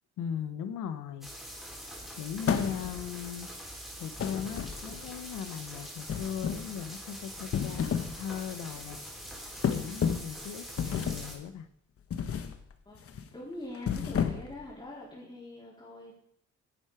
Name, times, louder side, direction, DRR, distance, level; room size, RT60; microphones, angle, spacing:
voice 1, 0.2-1.3 2.1-3.5 4.0-9.0 9.7-11.7, left 8 dB, 80° left, 11 dB, 1.1 m, -38 dB
sound 1, 1.2-11.4, equal, ahead, 4.3 m, -44 dB
sound 2, 2.4-3.1 4.2-5.1 6.1-6.8 7.4-8.2 8.5-8.8 9.6-10.4 10.8-11.3 12.1-12.6 12.9-13.2 13.7-14.6, left 7 dB, 50° left, 1.1 m, -31 dB
voice 2, 12.9-16.1, left 2 dB, 15° left, -8 dB, 4.2 m, -44 dB
10.5 x 7.9 x 5.0 m, 0.70 s
cardioid pair, 90°, 30 cm